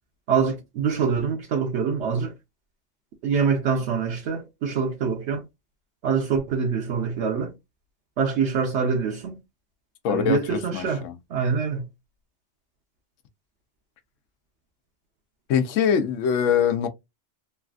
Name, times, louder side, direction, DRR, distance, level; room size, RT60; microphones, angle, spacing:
voice 1, 0.3-2.3 3.2-5.4 6.0-7.5 8.2-9.4 10.1-11.0 11.3-11.8, right 6 dB, 70° right, 0.9 m, -25 dB
voice 2, 10.0-11.2 15.5-16.9, left 8 dB, 85° left, 0.9 m, -23 dB
3.2 x 2.4 x 2.3 m
omnidirectional pair, 1.3 m